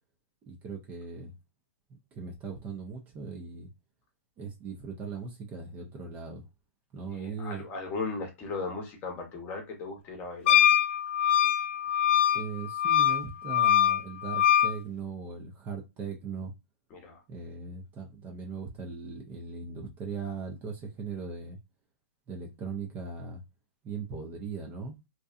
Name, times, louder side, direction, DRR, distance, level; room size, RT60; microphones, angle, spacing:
voice 1, 0.5-1.3 2.1-3.7 4.4-6.5 6.9-7.6 12.3-16.5 17.3-21.6 22.3-23.4 23.8-24.9, right 5 dB, 20° right, 0.5 m, -39 dB
voice 2, 7.1-10.6 16.9-17.2, left 4 dB, 25° left, 0.9 m, -37 dB
Wind instrument woodwind instrument, 10.5-14.7, left 10 dB, 55° left, 0.3 m, -23 dB
2.7 x 2.2 x 2.3 m
hypercardioid pair, 145°, 8 cm